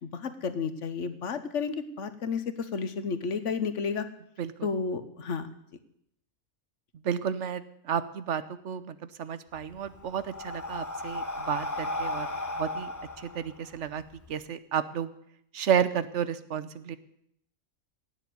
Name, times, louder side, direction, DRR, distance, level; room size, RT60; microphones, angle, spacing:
voice 1, 0.0-4.0 4.6-5.5, left 5 dB, 60° left, 11 dB, 1.4 m, -32 dB
voice 2, 4.4-4.7 7.0-12.3 12.6-12.9 13.2-14.0 14.3-15.1 15.5-17.0, right 8 dB, 60° right, 14 dB, 1.1 m, -31 dB
Breathing, 9.5-14.3, left 2 dB, 20° left, 0.5 m, -35 dB
17.0 x 7.2 x 9.6 m, 0.73 s
omnidirectional pair, 1.4 m